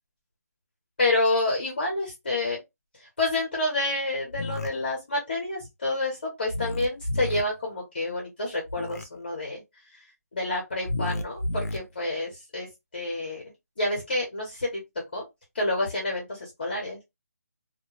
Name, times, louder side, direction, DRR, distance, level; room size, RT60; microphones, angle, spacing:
voice 1, 1.0-2.6 3.2-9.6 10.3-12.7 12.9-13.4 13.8-14.8 15.1-15.2 15.5-17.0, left 2 dB, 35° left, 0.8 m, -28 dB
sound 1, 4.3-4.7 6.5-7.4 8.7-9.0 10.8-11.8, left 1 dB, 65° left, 0.5 m, -31 dB
2.2 x 2.1 x 3.0 m
hypercardioid pair, 175°, 9 cm